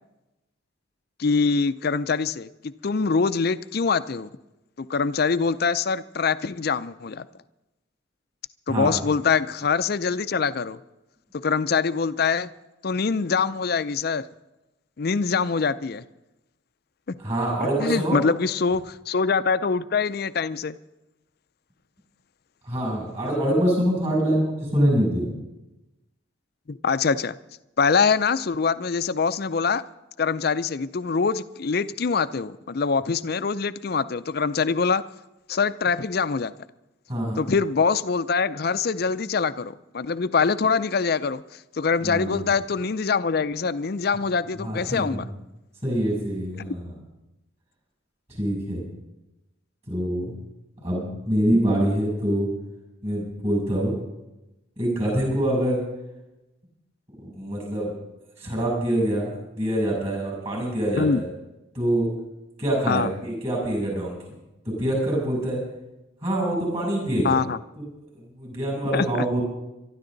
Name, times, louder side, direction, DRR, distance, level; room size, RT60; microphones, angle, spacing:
voice 1, 1.2-4.3 4.8-7.3 8.7-10.8 11.4-12.5 12.8-14.2 15.0-16.0 17.8-20.8 26.7-27.4 27.8-29.8 30.2-35.0 35.5-36.5 37.4-41.4 41.7-45.2 61.0-61.2 62.9-63.1 67.2-67.6 68.9-69.1, left 5 dB, 50° left, 14 dB, 0.5 m, -24 dB
voice 2, 17.2-18.2 22.6-25.2 37.1-37.4 42.0-42.5 44.6-45.3 45.8-47.0 48.3-48.8 49.9-50.3 50.8-52.5 53.0-54.0 54.8-55.8 57.2-57.9 58.4-61.3 61.7-62.1 62.6-64.2 64.6-65.6 66.2-67.4 67.8-67.9 68.1-69.4, right 1 dB, 30° right, -1 dB, 7.6 m, -25 dB
23.0 x 12.5 x 3.9 m, 0.97 s
head